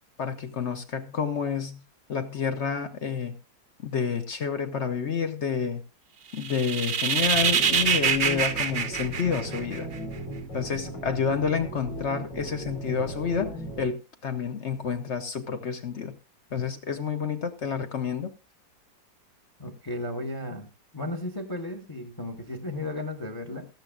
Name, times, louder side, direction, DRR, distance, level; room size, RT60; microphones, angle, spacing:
voice 1, 0.2-1.8 2.1-3.4 3.8-5.8 6.3-9.9 10.5-16.2 16.5-18.3, left 6 dB, 55° left, 0.8 m, -29 dB
sound 1, 6.4-10.0, right 7 dB, 60° right, 0.6 m, -25 dB
sound 2, 7.2-13.9, right 1 dB, 80° left, 5.2 m, -37 dB
voice 2, 19.6-20.7 20.9-23.7, left 1 dB, 15° left, 0.9 m, -34 dB
16.0 x 13.0 x 2.4 m
omnidirectional pair, 2.0 m